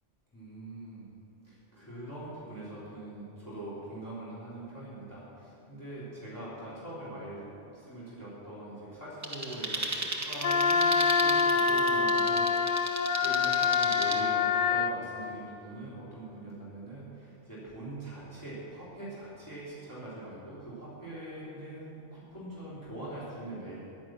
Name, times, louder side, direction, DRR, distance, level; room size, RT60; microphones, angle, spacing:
voice 1, 0.3-1.1 1.4-23.8, right 1 dB, 15° left, -10 dB, 3.3 m, -43 dB
sound 1, 9.2-14.2, right 2 dB, 15° right, 0.9 m, -36 dB
Wind instrument woodwind instrument, 10.4-15.0, left 5 dB, 55° left, 0.8 m, -26 dB
10.5 x 10.5 x 7.5 m, 2.9 s
omnidirectional pair, 1.3 m